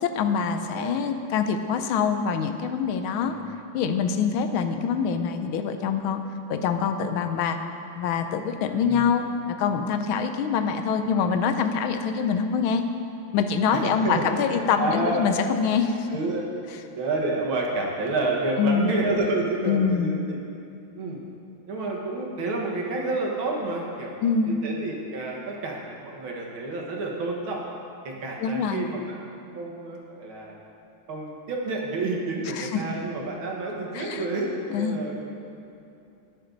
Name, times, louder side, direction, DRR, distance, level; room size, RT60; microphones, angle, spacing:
voice 1, 0.0-3.3 3.7-6.2 6.5-7.6 8.0-12.8 13.3-16.1 18.6-19.0 19.7-20.2 24.2-24.6 28.4-28.9 32.5-32.8 33.9-34.3 34.7-35.0, left 6 dB, 80° left, 7 dB, 1.5 m, -25 dB
voice 2, 0.6-1.0 3.1-3.5 8.7-9.2 13.7-15.3 16.1-16.5 16.9-20.4 20.9-21.2 21.7-27.6 28.0-30.5 31.1-35.2, right 2 dB, 75° right, -1 dB, 2.3 m, -29 dB
19.5 x 6.6 x 3.9 m, 2.7 s
omnidirectional pair, 2.3 m